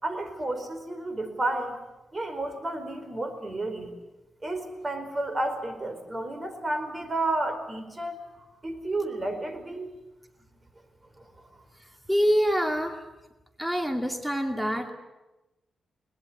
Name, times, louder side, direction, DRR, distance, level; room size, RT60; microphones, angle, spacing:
voice 1, 0.0-1.8 2.1-3.9 4.4-8.3 8.6-9.9 11.2-11.3, right 2 dB, 25° right, 8 dB, 4.6 m, -31 dB
voice 2, 12.1-13.0 13.6-14.9, equal, 5° right, 5 dB, 2.4 m, -25 dB
22.0 x 20.0 x 9.6 m, 1.0 s
cardioid pair, 95°, 0 cm